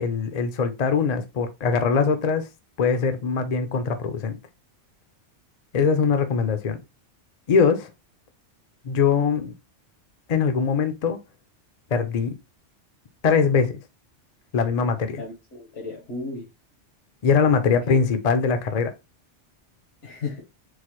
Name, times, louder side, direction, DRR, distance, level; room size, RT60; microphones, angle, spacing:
voice 1, 0.0-2.5 2.8-4.4 5.7-6.8 7.5-7.9 8.8-9.5 10.3-11.2 11.9-12.3 13.2-13.8 14.5-15.2 17.2-18.9, left 5 dB, 50° left, 0.5 m, -22 dB
voice 2, 15.2-16.5 17.9-18.0 20.0-20.4, left 3 dB, 75° left, 1.4 m, -34 dB
4.0 x 2.5 x 2.9 m
omnidirectional pair, 1.2 m